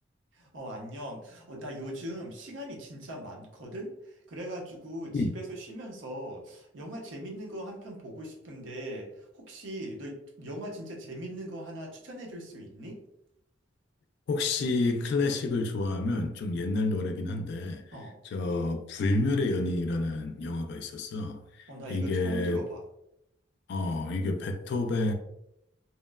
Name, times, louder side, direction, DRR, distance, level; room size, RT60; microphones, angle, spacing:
voice 1, 0.3-9.1 9.3-13.0 17.9-18.2 21.7-22.8, right 1 dB, 75° right, 0.6 m, -40 dB
voice 2, 14.3-17.8 18.2-22.6 23.7-25.1, left 2 dB, 60° left, 0.3 m, -29 dB
2.8 x 2.0 x 2.2 m
head